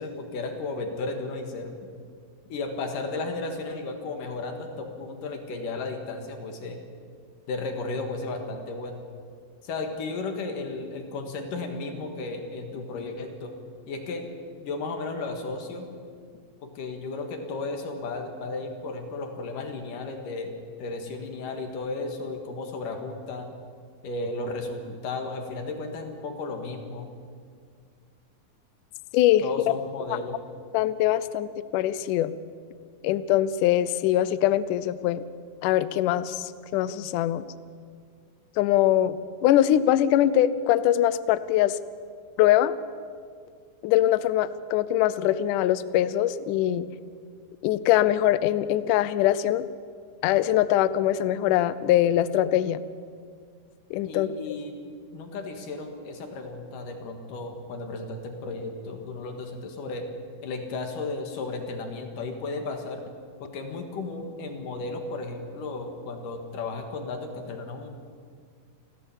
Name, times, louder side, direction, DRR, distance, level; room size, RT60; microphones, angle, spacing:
voice 1, 0.0-1.7 2.5-6.8 7.5-9.0 9.6-13.5 13.9-14.3 14.6-15.9 16.6-20.5 20.8-23.5 24.0-27.1 29.4-30.4 54.0-60.1 60.4-63.0 63.4-67.9, left 3 dB, 60° left, 4 dB, 3.1 m, -34 dB
voice 2, 29.1-29.4 30.7-32.3 33.0-35.2 35.6-37.4 38.6-41.8 42.4-42.7 43.8-46.9 47.6-49.6 50.2-52.8 53.9-54.3, left 12 dB, 85° left, 15 dB, 1.8 m, -22 dB
29.5 x 12.5 x 7.2 m, 2.1 s
omnidirectional pair, 4.5 m